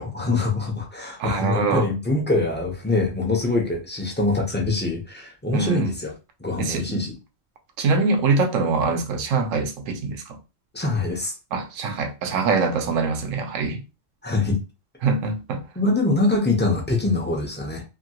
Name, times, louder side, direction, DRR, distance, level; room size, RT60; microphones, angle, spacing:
voice 1, 0.0-6.1 6.4-7.1 10.7-11.3 14.2-14.6 15.8-17.8, left 3 dB, 15° left, 0.4 m, -24 dB
voice 2, 1.2-1.9 5.5-5.9 6.6-7.1 7.8-10.4 11.5-13.8 15.0-15.6, right 4 dB, 80° right, 1.0 m, -24 dB
2.8 x 2.6 x 2.7 m
omnidirectional pair, 1.3 m